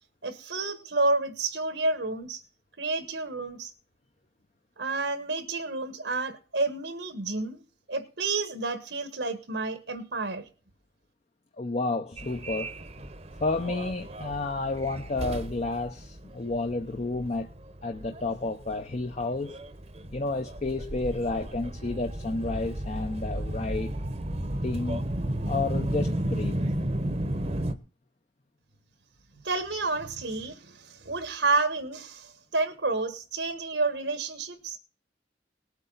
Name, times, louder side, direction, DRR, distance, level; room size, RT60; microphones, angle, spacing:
voice 1, 0.2-2.4 2.8-3.7 4.8-7.6 7.9-10.5 29.4-34.8, right 3 dB, 80° right, 1.4 m, -30 dB
voice 2, 11.6-12.7 13.4-17.5 17.8-19.6 20.1-23.9 24.6-25.1 25.4-26.6, left 3 dB, 40° left, 0.6 m, -31 dB
Subway metro underground, 12.2-27.7, right 1 dB, 35° right, 0.9 m, -34 dB
19.0 x 8.2 x 4.0 m
head